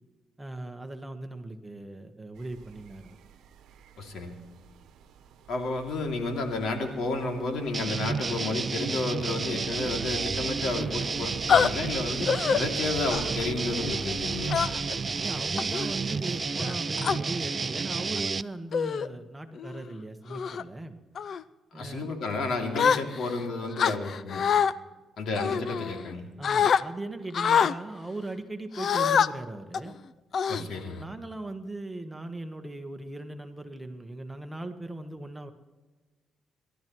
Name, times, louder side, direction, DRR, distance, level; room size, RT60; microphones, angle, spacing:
voice 1, 0.4-3.2 15.1-21.0 21.7-22.1 26.4-30.0 30.6-30.7 31.0-35.5, right 2 dB, 10° right, 6 dB, 1.3 m, -38 dB
sound 1, 2.3-16.5, right 8 dB, 80° right, 1.0 m, -47 dB
voice 2, 4.0-4.4 5.5-14.7 21.7-24.4 25.2-26.3 30.5-31.0, left 3 dB, 70° left, 2 dB, 2.7 m, -31 dB
sound 2, 7.7-18.4, right 4 dB, 35° right, 0.5 m, -31 dB
sound 3, 11.5-11.7 12.3-12.6 13.1-13.4 14.5-15.0 15.6-15.9 16.6-17.2 18.0-18.2 18.7-19.1 19.6-19.8 20.3-20.6 21.2-21.4 22.7-23.4 23.8-24.7 25.4-26.1 26.4-26.8 27.3-27.7 28.8-29.3 29.7-29.9 30.3-31.0, left 7 dB, 55° left, 0.5 m, -25 dB
27.0 x 12.5 x 3.1 m, 1.3 s
cardioid pair, 90°, 0 cm